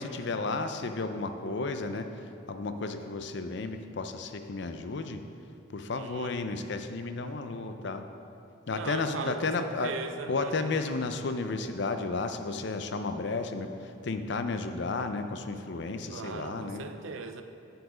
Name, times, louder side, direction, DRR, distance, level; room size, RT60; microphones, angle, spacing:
voice 1, 0.0-5.2 5.7-8.0 8.7-10.0 10.3-16.8, left 3 dB, 60° left, 8 dB, 0.5 m, -33 dB
voice 2, 6.0-6.3 8.7-10.8 16.1-17.4, right 4 dB, 80° right, 7 dB, 0.6 m, -39 dB
7.9 x 7.1 x 5.0 m, 2.8 s
head